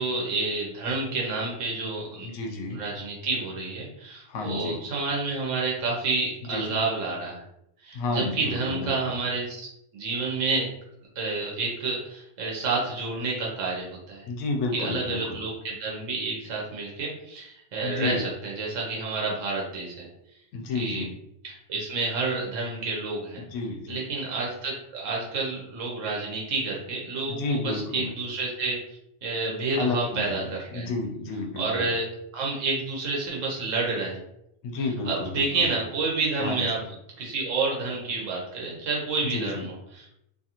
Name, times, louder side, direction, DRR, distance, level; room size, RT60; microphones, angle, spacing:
voice 1, 0.0-2.3 2.7-7.4 7.8-9.7 9.9-10.7 11.2-14.2 14.7-20.1 20.7-21.0 21.4-23.4 23.9-28.8 29.2-30.9 31.6-32.0 32.3-34.2 35.0-36.8 37.2-40.1, right 3 dB, 85° right, -3 dB, 1.1 m, -29 dB
voice 2, 2.2-2.8 4.3-4.8 6.5-6.8 7.9-8.9 14.3-15.4 17.8-18.2 20.5-21.2 23.4-24.0 27.3-28.1 29.7-30.5 30.7-31.9 34.6-35.7 36.4-36.8 39.2-39.7, left 3 dB, 80° left, 2 dB, 0.9 m, -31 dB
2.6 x 2.4 x 2.8 m, 0.78 s
omnidirectional pair, 1.3 m